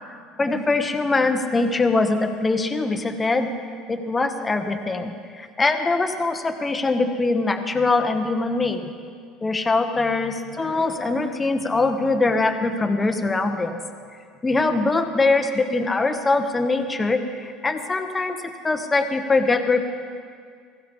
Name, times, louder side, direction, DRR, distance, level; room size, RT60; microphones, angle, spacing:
voice 1, 0.4-3.5 3.9-8.9 9.4-13.8 14.4-19.9, left 3 dB, 20° left, 7 dB, 1.0 m, -22 dB
16.5 x 15.0 x 3.6 m, 2.1 s
supercardioid pair, 115°, 0 cm